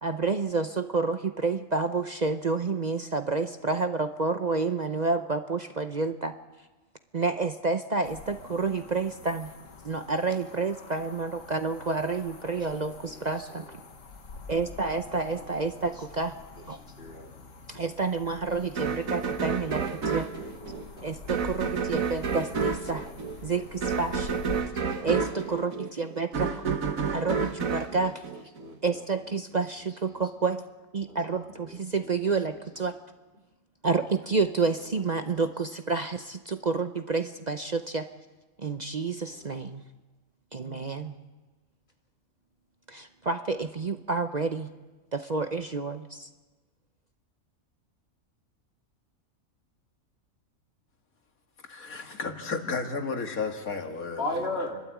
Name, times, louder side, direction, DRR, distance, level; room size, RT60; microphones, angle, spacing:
voice 1, 0.0-6.3 7.1-9.5 9.8-13.6 14.5-16.3 16.7-16.8 17.7-20.3 21.0-23.1 23.4-24.4 25.0-26.7 27.1-28.1 28.8-30.6 30.9-32.9 33.8-38.1 38.6-39.8 40.5-41.1 42.9-44.7 45.1-46.3, right 4 dB, 40° right, 8 dB, 0.7 m, -29 dB
sound 1, 8.0-24.6, left 4 dB, 65° left, 1.8 m, -46 dB
voice 2, 12.4-13.8 15.3-16.0 16.5-17.3 18.4-19.8 20.3-21.4 21.7-21.8 22.3-23.5 24.5-25.5 27.0-27.9 28.3-30.5 31.1-33.0 33.9-34.0 34.3-35.3 39.3-39.6 54.2-54.8, left 2 dB, 45° left, 0 dB, 3.5 m, -42 dB
sound 2, 18.8-29.0, right 5 dB, 75° right, 1.7 m, -30 dB
voice 3, 51.7-54.2, left 4 dB, 85° left, 4 dB, 2.3 m, -33 dB
30.0 x 12.5 x 8.4 m, 1.2 s
omnidirectional pair, 1.4 m